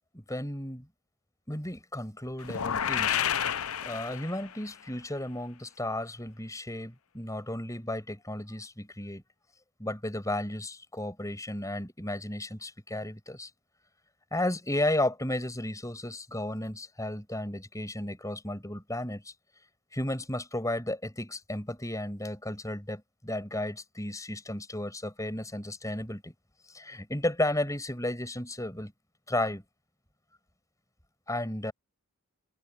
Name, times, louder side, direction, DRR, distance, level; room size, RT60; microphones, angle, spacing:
voice 1, 0.1-0.9 1.5-3.2 3.8-9.2 9.8-13.5 14.3-19.3 19.9-26.3 26.7-28.9 29.3-29.6 31.3-31.7, left 1 dB, 15° left, 7.1 m, -33 dB
sound 1, 2.4-4.6, left 9 dB, 75° left, 0.7 m, -30 dB
head